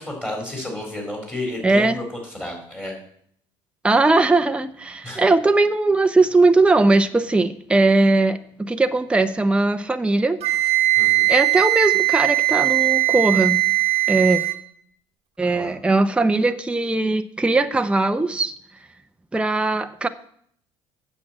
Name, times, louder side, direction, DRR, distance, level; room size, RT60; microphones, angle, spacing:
voice 1, 0.0-2.9 5.0-5.2 11.0-11.3 15.4-15.8, left 1 dB, 15° left, 0 dB, 4.0 m, -32 dB
voice 2, 1.6-2.0 3.8-10.4 11.3-13.6 14.1-14.4 15.4-18.5 19.3-20.1, right 2 dB, 10° right, 8 dB, 0.6 m, -19 dB
Wind instrument woodwind instrument, 10.4-14.6, right 18 dB, 60° right, 1.0 m, -19 dB
8.4 x 6.2 x 7.5 m, 0.66 s
supercardioid pair, 75°, 12 cm